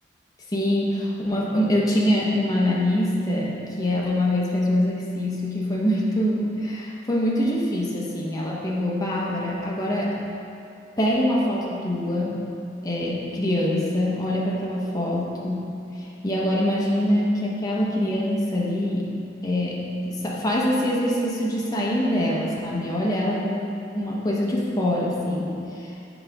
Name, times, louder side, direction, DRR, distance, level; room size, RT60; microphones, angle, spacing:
voice 1, 0.5-10.2 11.0-12.4 12.8-19.1 19.4-25.9, left 1 dB, 20° left, -5 dB, 0.7 m, -24 dB
5.9 x 3.9 x 4.6 m, 2.6 s
head